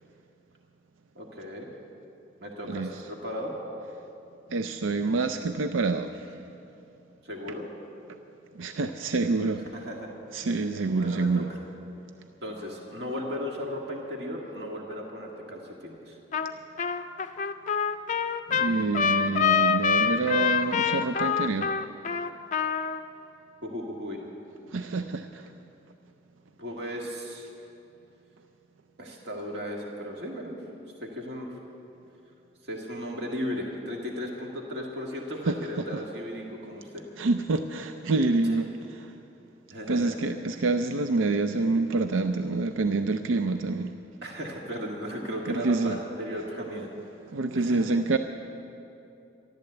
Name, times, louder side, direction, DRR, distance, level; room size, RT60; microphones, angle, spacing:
voice 1, 1.2-1.7 2.4-3.5 7.2-7.6 9.7-10.1 11.0-11.6 12.4-16.2 23.6-24.2 26.6-27.5 29.0-30.6 31.0-31.5 32.6-37.1 38.4-38.6 39.7-40.1 44.2-46.9 47.5-47.8, equal, 55° right, -1 dB, 1.9 m, -36 dB
voice 2, 4.5-6.3 8.6-9.6 10.3-11.5 18.5-21.7 24.7-25.5 35.5-35.6 37.2-39.1 39.9-43.9 45.5-46.0 47.3-48.2, right 3 dB, 85° right, 7 dB, 0.5 m, -27 dB
Trumpet, 16.3-16.5 16.8-23.0, left 6 dB, 35° left, 0.4 m, -26 dB
14.0 x 12.0 x 7.9 m, 2.8 s
head